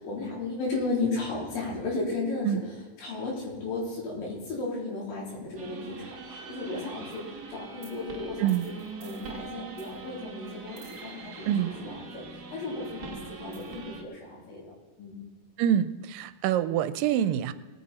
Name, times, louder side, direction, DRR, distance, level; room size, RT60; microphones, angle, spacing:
voice 1, 0.0-8.7 9.0-12.2 12.5-14.6 15.0-15.2, left 3 dB, 75° left, -3 dB, 5.4 m, -34 dB
sound 1, 5.6-14.0, right 4 dB, 45° right, 1.3 m, -43 dB
voice 2, 15.6-17.5, right 10 dB, 85° right, 13 dB, 2.2 m, -26 dB
20.5 x 9.7 x 4.3 m, 1.4 s
omnidirectional pair, 4.0 m